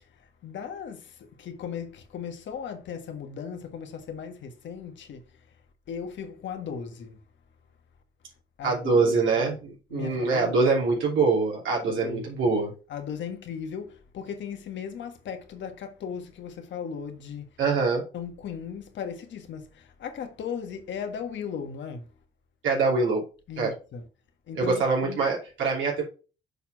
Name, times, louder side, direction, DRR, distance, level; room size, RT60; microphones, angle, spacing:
voice 1, 0.2-5.3 5.9-7.2 8.6-9.6 9.9-10.6 11.8-12.3 12.9-17.5 18.1-22.1 23.5-24.0 24.5-25.2, left 7 dB, 70° left, 1.5 m, -37 dB
voice 2, 8.6-12.7 17.6-18.0 22.6-23.2 23.6-23.7 24.5-26.0, right 4 dB, 75° right, 2.9 m, -24 dB
6.8 x 4.4 x 4.5 m
cardioid pair, 90°, 20 cm